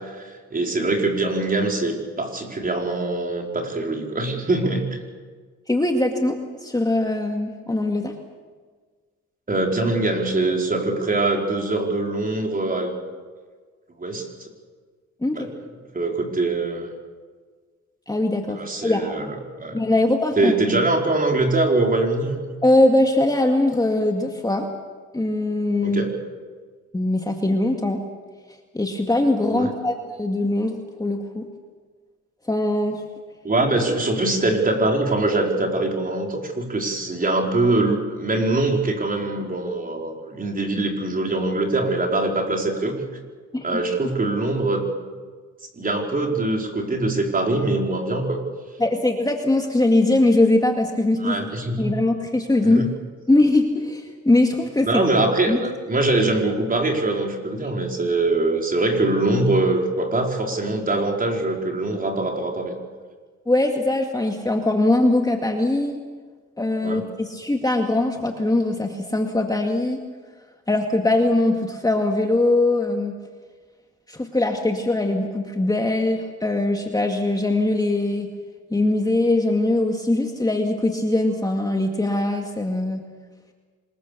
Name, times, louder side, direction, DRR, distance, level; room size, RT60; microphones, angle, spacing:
voice 1, 0.0-5.0 9.5-12.9 14.0-14.3 15.3-15.5 15.9-16.9 18.5-19.8 20.4-22.4 25.8-26.1 29.5-29.7 33.4-43.0 43.6-44.8 45.8-48.4 51.2-51.9 52.6-52.9 54.8-62.7 66.8-67.0, right 2 dB, 30° right, 1 dB, 5.0 m, -23 dB
voice 2, 5.7-8.1 15.2-15.5 18.1-19.4 19.7-20.5 22.6-24.7 25.1-26.0 26.9-28.0 28.7-31.5 32.5-33.0 43.5-43.7 48.8-51.5 51.8-52.8 53.3-54.9 55.5-55.6 63.5-66.0 66.6-70.0 70.7-73.1 74.1-78.3 78.7-83.0, left 2 dB, 10° left, 3 dB, 2.2 m, -21 dB
26.0 x 21.5 x 6.9 m, 1.5 s
cardioid pair, 90°, 30 cm